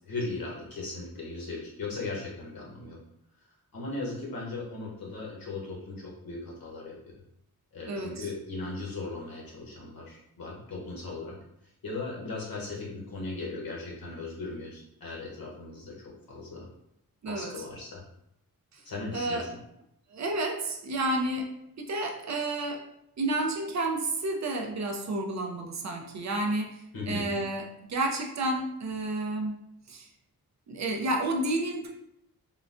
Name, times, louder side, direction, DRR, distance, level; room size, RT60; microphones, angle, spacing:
voice 1, 0.0-3.0 3.7-6.9 7.7-11.4 11.8-16.7 17.2-18.0 18.8-19.5 26.9-27.3, left 3 dB, 70° left, -3 dB, 1.0 m, -37 dB
voice 2, 7.9-8.3 17.2-17.5 19.1-19.5 20.1-21.5 21.8-22.8 23.2-26.8 27.1-29.5 29.9-30.1 30.7-31.9, right 2 dB, 50° right, 2 dB, 0.4 m, -30 dB
3.7 x 2.1 x 2.5 m, 0.80 s
wide cardioid pair, 180°, 36 cm